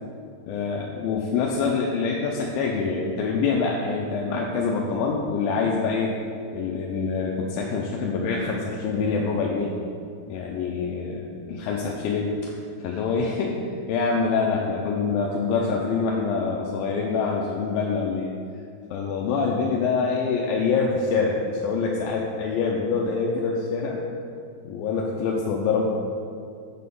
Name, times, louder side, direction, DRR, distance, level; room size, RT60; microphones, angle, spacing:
voice 1, 0.5-6.1 6.5-9.7 10.3-12.6 12.8-13.6 13.9-18.3 18.9-24.0 24.6-25.8, left 4 dB, 80° left, -1 dB, 2.4 m, -25 dB
7.6 x 6.4 x 5.4 m, 2.3 s
omnidirectional pair, 4.2 m